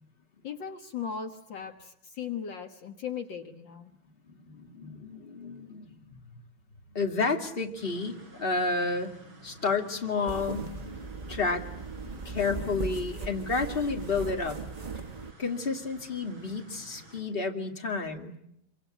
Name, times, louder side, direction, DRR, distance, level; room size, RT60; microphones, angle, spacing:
voice 1, 0.4-3.9, left 7 dB, 65° left, 6 dB, 2.0 m, -37 dB
voice 2, 4.3-6.0 6.9-9.2 9.4-11.7 12.0-14.6 15.4-18.4, left 4 dB, 25° left, 3 dB, 2.5 m, -31 dB
sound 1, 7.8-17.2, right 2 dB, 70° right, 8.5 m, -53 dB
sound 2, 10.3-15.3, right 4 dB, 25° right, 0.9 m, -38 dB
26.5 x 24.5 x 9.1 m, 0.76 s
omnidirectional pair, 2.2 m